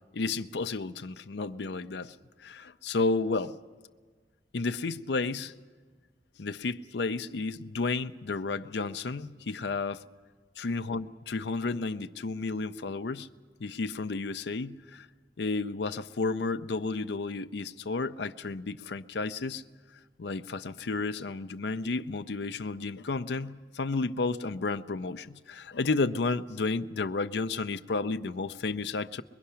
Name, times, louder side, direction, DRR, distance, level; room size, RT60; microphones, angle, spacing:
voice 1, 0.1-3.5 4.5-5.5 6.4-10.0 10.6-13.3 13.6-15.1 15.4-19.6 20.2-29.2, left 3 dB, 80° left, 10 dB, 0.6 m, -32 dB
22.5 x 22.5 x 5.7 m, 1.5 s
head